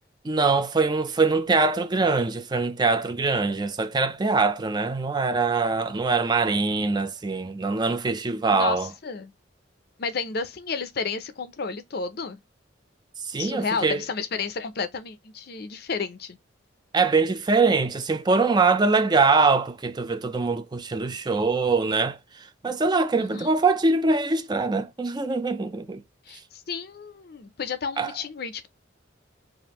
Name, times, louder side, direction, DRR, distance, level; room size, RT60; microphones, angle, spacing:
voice 1, 0.2-8.9 13.2-14.0 16.9-26.0 28.0-28.1, right 4 dB, 20° right, 0.4 m, -23 dB
voice 2, 8.5-9.3 10.0-12.4 13.4-16.4 23.2-23.5 26.3-28.7, left 5 dB, 55° left, 0.5 m, -32 dB
5.0 x 2.5 x 2.9 m
head